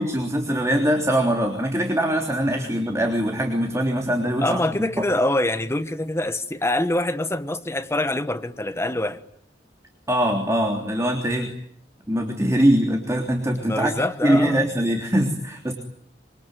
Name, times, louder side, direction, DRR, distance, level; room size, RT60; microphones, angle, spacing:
voice 1, 0.0-5.0 10.1-11.5 12.1-15.7, equal, 15° right, 3.3 m, -22 dB
voice 2, 4.4-9.2 11.2-11.5 13.6-14.7, left 1 dB, 15° left, 1.3 m, -25 dB
26.0 x 24.5 x 9.3 m
head